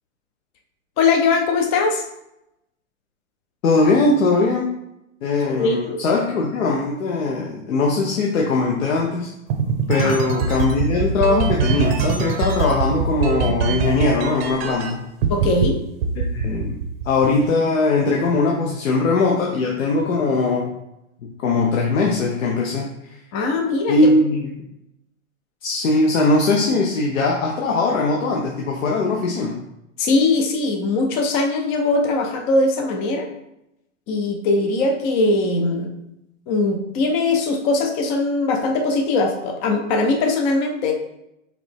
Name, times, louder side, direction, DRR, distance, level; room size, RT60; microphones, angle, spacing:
voice 1, 1.0-2.0 5.6-6.0 9.9-10.1 15.3-15.8 23.3-24.1 30.0-33.3 34.1-36.0 36.5-40.9, left 3 dB, 20° left, 3 dB, 0.4 m, -20 dB
voice 2, 3.6-4.7 5.2-9.3 9.9-15.0 16.3-16.8 17.0-20.7 21.2-22.9 23.9-24.5 25.6-29.6, left 3 dB, 75° left, -1 dB, 0.9 m, -20 dB
sound 1, 9.5-14.9 15.2-15.7 16.0-17.5, right 6 dB, 50° right, 0.7 m, -22 dB
5.0 x 3.1 x 3.4 m, 0.85 s
hypercardioid pair, 135°, 40 cm